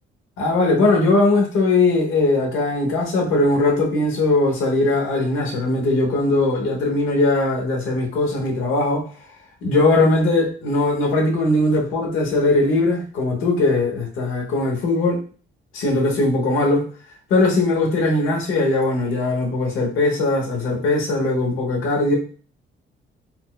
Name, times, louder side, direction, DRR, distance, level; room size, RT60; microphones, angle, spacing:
voice 1, 0.4-9.0 9.6-15.2 15.7-16.9 17.3-22.2, left 2 dB, 85° left, 0 dB, 0.9 m, -20 dB
4.2 x 2.1 x 2.2 m, 0.40 s
cardioid pair, 90°, 20 cm